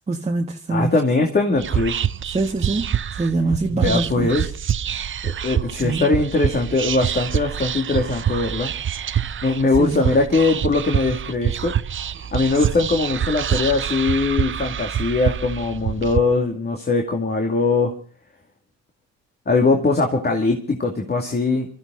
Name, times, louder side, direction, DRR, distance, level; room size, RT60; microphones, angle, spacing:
voice 1, 0.1-0.9 2.3-2.9 3.1-4.3 5.8-6.1 9.8-10.0, right 3 dB, 20° right, 1.5 m, -23 dB
voice 2, 0.7-2.0 3.7-4.5 5.2-8.7 9.4-11.7 12.3-17.9 19.5-21.7, left 3 dB, 30° left, 2.4 m, -21 dB
Whispering, 1.6-16.2, right 9 dB, 40° right, 0.7 m, -26 dB
25.0 x 14.0 x 3.9 m
cardioid pair, 90°, 30 cm